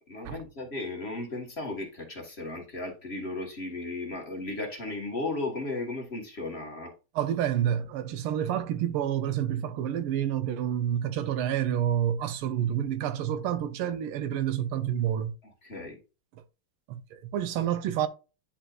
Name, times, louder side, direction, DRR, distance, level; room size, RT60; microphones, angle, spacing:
voice 1, 0.1-6.9 15.6-16.0, left 2 dB, 30° left, 1.7 m, -35 dB
voice 2, 7.1-15.3 16.9-18.1, right 10 dB, 85° right, 1.6 m, -28 dB
10.0 x 4.4 x 2.4 m
omnidirectional pair, 2.4 m